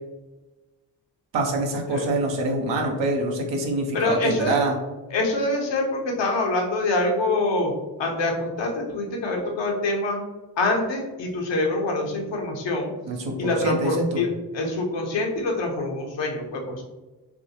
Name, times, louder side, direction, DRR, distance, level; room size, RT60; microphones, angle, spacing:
voice 1, 1.3-4.7 13.1-14.2, right 2 dB, 90° right, 2 dB, 0.7 m, -25 dB
voice 2, 3.9-4.6 5.1-7.7 8.0-10.2 10.6-12.9 13.4-16.8, left 2 dB, 80° left, 0 dB, 0.9 m, -25 dB
3.5 x 2.7 x 2.8 m, 1.1 s
supercardioid pair, 40°, 43 cm